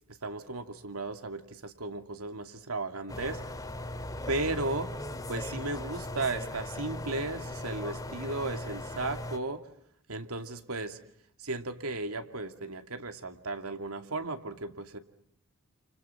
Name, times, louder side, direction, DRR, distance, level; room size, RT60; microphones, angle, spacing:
voice 1, 0.2-3.4 4.3-5.0 5.3-9.7 10.1-11.0 11.4-15.0, right 2 dB, 85° right, 7 dB, 2.6 m, -35 dB
sound 1, 3.1-9.4, left 1 dB, 15° left, 2.1 m, -38 dB
30.0 x 29.5 x 5.8 m, 0.72 s
head